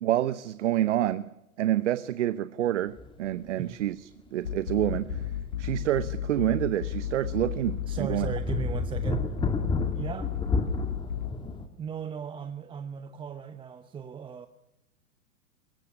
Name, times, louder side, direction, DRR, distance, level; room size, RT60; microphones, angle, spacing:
voice 1, 0.0-1.3 1.6-5.2 5.6-8.3, right 13 dB, 55° right, 0.9 m, -28 dB
sound 1, 3.0-3.1 3.5-3.6 4.5-5.9 6.3-6.4 6.9-11.7, left 3 dB, 10° left, 2.1 m, -32 dB
sound 2, 4.4-11.3, left 10 dB, 70° left, 1.5 m, -34 dB
voice 2, 7.8-9.3 9.9-10.3 11.8-14.5, right 7 dB, 10° right, 0.8 m, -37 dB
22.0 x 18.5 x 9.9 m
figure-of-eight pair, 110°, 43 cm